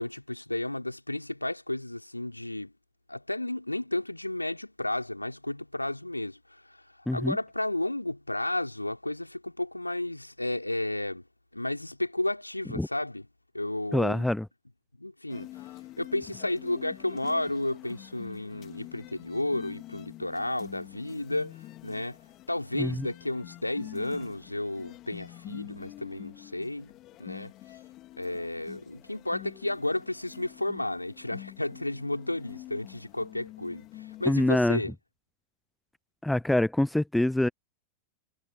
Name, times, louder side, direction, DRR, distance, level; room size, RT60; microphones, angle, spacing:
voice 1, 0.0-2.7 3.1-6.8 7.1-11.2 11.5-13.3 13.5-14.3 15.0-15.5 16.0-21.6 21.8-22.2 22.5-26.9 27.2-27.5 28.2-34.9, left 1 dB, 85° left, 4.8 m, -32 dB
voice 2, 7.1-7.4 12.8-12.9 13.9-14.5 22.8-23.1 34.3-34.8 36.2-37.5, left 1 dB, 5° left, 0.8 m, -25 dB
sound 1, 15.3-34.3, left 16 dB, 35° left, 3.0 m, -47 dB
figure-of-eight pair, 90°, 0 cm